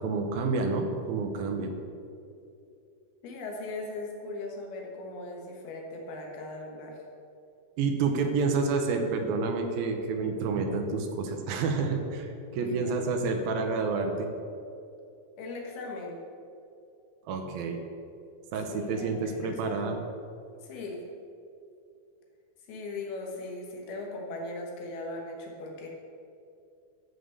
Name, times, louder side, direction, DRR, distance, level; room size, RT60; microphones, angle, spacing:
voice 1, 0.0-1.7 7.8-14.3 17.3-17.8 18.5-20.0, right 4 dB, 75° right, 5 dB, 2.7 m, -29 dB
voice 2, 3.2-7.0 12.5-12.9 15.4-16.2 18.7-20.0 20.6-21.0 22.7-25.9, left 2 dB, 85° left, 0 dB, 3.6 m, -39 dB
13.0 x 6.0 x 6.7 m, 2.6 s
omnidirectional pair, 4.3 m